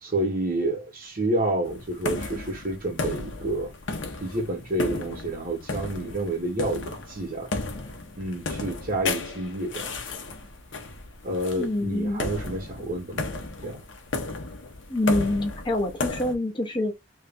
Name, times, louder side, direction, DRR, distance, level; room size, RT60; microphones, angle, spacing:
voice 1, 0.0-3.7 4.2-7.5 8.2-10.0 11.2-13.2 13.6-13.8, right 1 dB, 50° right, 1.5 m, -29 dB
sound 1, 1.6-16.3, left 3 dB, 85° left, 1.0 m, -34 dB
voice 2, 11.6-12.3 14.9-16.9, left 1 dB, 25° left, 0.9 m, -26 dB
3.2 x 2.7 x 3.6 m
head